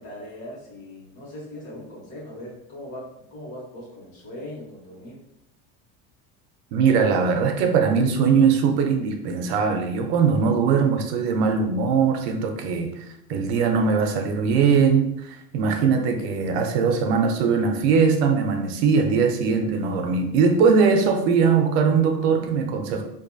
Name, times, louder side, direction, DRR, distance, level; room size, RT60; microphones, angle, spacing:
voice 1, 0.0-5.2, left 1 dB, 70° left, -4 dB, 1.3 m, -39 dB
voice 2, 6.7-13.0 13.3-23.0, right 5 dB, 65° right, 4 dB, 0.5 m, -21 dB
2.6 x 2.2 x 2.5 m, 0.78 s
cardioid pair, 180°, 34 cm